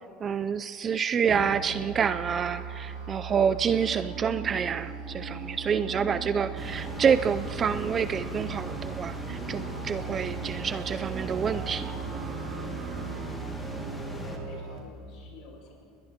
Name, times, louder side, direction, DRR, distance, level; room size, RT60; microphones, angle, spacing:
voice 1, 0.2-11.9, right 7 dB, 20° right, 13 dB, 0.4 m, -28 dB
Musical instrument, 1.2-14.8, right 5 dB, 50° right, 4.6 m, -38 dB
sound 1, 3.6-13.9, right 4 dB, 80° right, 5.2 m, -44 dB
sound 2, 6.6-14.4, left 1 dB, 5° left, 2.1 m, -40 dB
voice 2, 13.3-15.7, left 3 dB, 45° left, -1 dB, 7.5 m, -51 dB
29.5 x 21.0 x 4.4 m, 2.5 s
cardioid pair, 175°, 0 cm